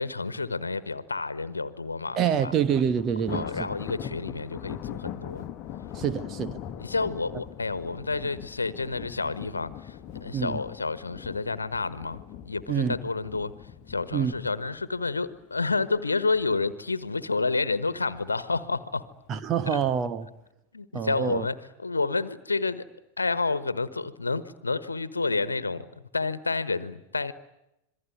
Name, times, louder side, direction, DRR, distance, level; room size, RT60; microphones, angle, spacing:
voice 1, 0.0-2.5 3.3-5.5 6.8-19.1 19.7-19.8 20.7-21.6 21.8-22.9 23.2-25.9 26.1-27.3, left 3 dB, 80° left, 1.3 m, -30 dB
voice 2, 2.2-3.7 5.9-6.6 10.3-10.6 12.7-12.9 14.1-14.3 19.3-20.3 20.9-21.5, right 8 dB, 30° right, 1.2 m, -26 dB
Thunder, 2.7-16.0 16.4-16.7 17.0-17.1 18.0-18.6, left 10 dB, 35° left, 1.4 m, -41 dB
27.0 x 22.0 x 9.4 m
figure-of-eight pair, 90°, 0 cm